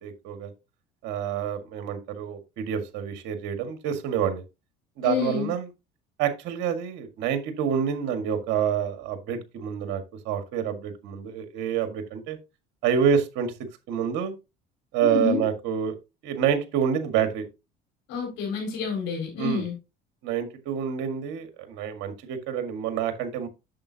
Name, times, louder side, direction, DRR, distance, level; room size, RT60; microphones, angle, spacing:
voice 1, 0.0-0.5 1.0-4.4 5.0-5.7 6.2-12.4 12.8-13.5 13.9-14.3 14.9-16.0 16.2-17.5 19.4-19.6 20.2-23.5, right 8 dB, 70° right, 8 dB, 1.8 m, -27 dB
voice 2, 5.0-5.5 15.0-15.4 18.1-19.7, left 5 dB, 75° left, 0 dB, 4.4 m, -28 dB
8.6 x 7.0 x 2.8 m, 0.26 s
supercardioid pair, 90°, 20 cm